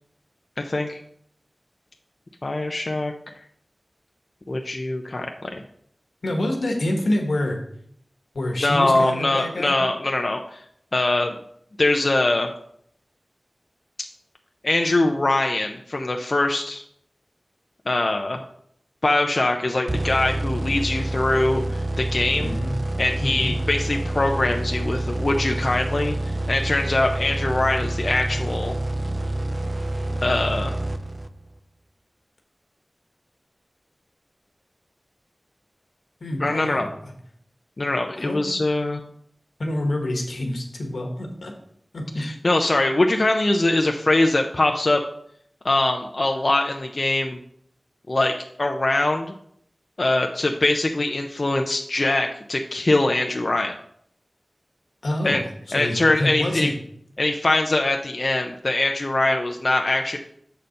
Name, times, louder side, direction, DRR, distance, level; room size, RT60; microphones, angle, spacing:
voice 1, 0.6-1.0 2.4-3.1 4.5-5.6 8.6-10.6 10.9-11.3 11.8-12.5 14.6-16.8 17.9-18.4 19.0-22.5 23.0-28.8 30.2-30.8 36.4-36.9 37.8-39.0 42.2-45.0 45.6-47.4 48.1-49.3 50.0-53.7 55.2-55.4 55.7-56.7 57.2-60.2, left 2 dB, 55° left, 3 dB, 0.6 m, -22 dB
voice 2, 6.2-7.6 8.3-9.8 22.4-22.7 23.2-23.5 36.2-37.1 38.2-38.5 39.6-41.5 41.9-42.2 55.0-55.4 55.7-56.7, left 1 dB, 90° left, 2 dB, 1.5 m, -27 dB
sound 1, 19.9-31.5, right 1 dB, 40° right, 0.5 m, -27 dB
6.8 x 4.3 x 6.5 m, 0.68 s
wide cardioid pair, 45°, 0 cm